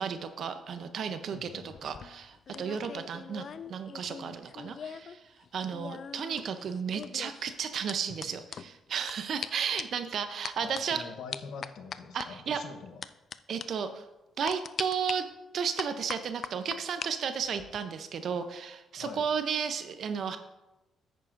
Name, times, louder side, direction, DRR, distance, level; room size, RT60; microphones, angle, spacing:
voice 1, 0.0-5.2 5.5-11.0 12.1-12.6 13.5-14.0 14.4-15.3 15.5-20.4, right 7 dB, 60° right, 9 dB, 0.6 m, -33 dB
voice 2, 1.3-2.0 10.6-13.0 19.0-19.2, left 5 dB, 75° left, 7 dB, 0.9 m, -45 dB
sound 1, 1.7-5.2 5.4-9.1 9.4-9.5 9.8-10.0 10.4-10.8 11.3-12.3 13.0-13.4 13.6-13.7 14.5-15.1 15.8-17.1 17.4-17.8, left 7 dB, 50° left, 0.3 m, -41 dB
10.0 x 9.1 x 2.5 m, 1.0 s
cardioid pair, 90°, 0 cm